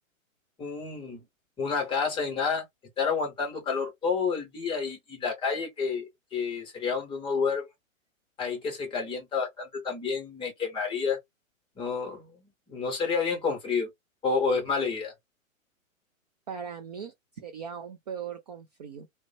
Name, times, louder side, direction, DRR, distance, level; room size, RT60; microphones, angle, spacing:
voice 1, 0.6-1.2 1.6-2.7 3.0-7.7 8.4-11.2 11.8-12.4 12.7-13.9 14.2-15.1, left 5 dB, 10° left, 0.9 m, -29 dB
voice 2, 16.5-19.1, right 7 dB, 35° right, 0.4 m, -39 dB
2.5 x 2.1 x 2.3 m
figure-of-eight pair, 120°, 41 cm